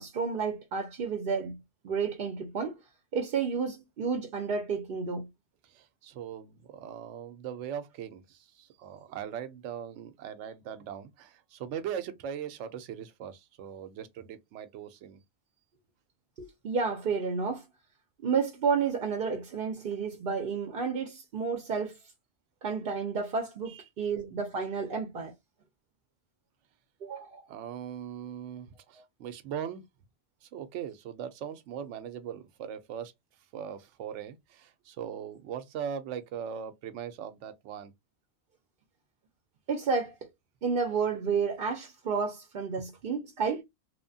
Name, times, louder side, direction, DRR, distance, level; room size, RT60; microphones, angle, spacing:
voice 1, 0.0-1.6 1.8-2.8 3.1-5.3 16.4-17.6 18.2-22.0 22.6-25.3 27.0-27.4 39.7-40.1 40.6-43.6, right 5 dB, 55° right, 0.7 m, -31 dB
voice 2, 5.6-15.2 23.7-24.1 27.5-29.9 30.4-33.1 33.5-37.9, right 8 dB, 85° right, 0.9 m, -40 dB
2.9 x 2.1 x 2.6 m
omnidirectional pair, 1.2 m